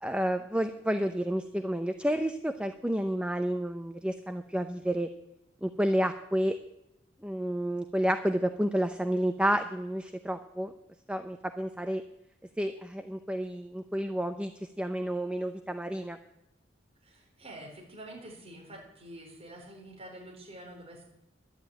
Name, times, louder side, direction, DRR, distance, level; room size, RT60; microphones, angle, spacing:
voice 1, 0.0-5.1 5.6-6.6 7.2-10.7 11.1-12.0 12.6-14.5 14.8-16.2, equal, 5° right, 7 dB, 0.7 m, -30 dB
voice 2, 17.0-21.0, right 1 dB, 35° right, -1 dB, 4.3 m, -47 dB
12.0 x 10.5 x 8.8 m, 0.88 s
head